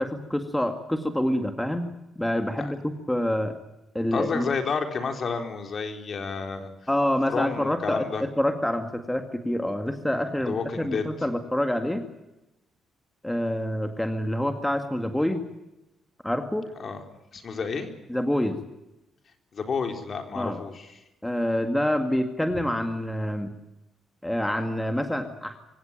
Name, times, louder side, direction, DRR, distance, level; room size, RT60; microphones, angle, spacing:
voice 1, 0.0-1.9 2.2-3.5 3.9-4.5 6.9-12.0 13.2-15.4 16.2-16.7 18.1-18.6 20.4-20.6 21.2-23.5 24.2-25.6, left 1 dB, 5° left, 6 dB, 2.1 m, -27 dB
voice 2, 4.1-6.7 7.3-8.2 10.4-11.1 16.8-17.0 17.3-17.9 19.5-21.0, left 5 dB, 45° left, 5 dB, 4.1 m, -30 dB
25.0 x 16.5 x 9.1 m, 0.96 s
cardioid pair, 90°, 0 cm